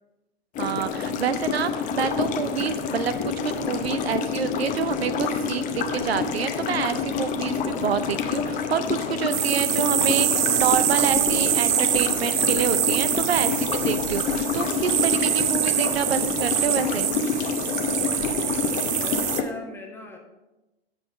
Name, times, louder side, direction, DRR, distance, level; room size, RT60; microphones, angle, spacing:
sound 1, 0.6-19.4, left 6 dB, 25° left, 0.7 m, -28 dB
voice 1, 0.6-17.1, right 7 dB, 80° right, 12 dB, 0.7 m, -27 dB
sound 2, 9.3-19.4, right 13 dB, 30° right, 0.3 m, -25 dB
voice 2, 18.2-20.2, left 3 dB, 5° left, 0 dB, 1.2 m, -41 dB
8.1 x 5.5 x 4.5 m, 1.0 s
hypercardioid pair, 115°, 30 cm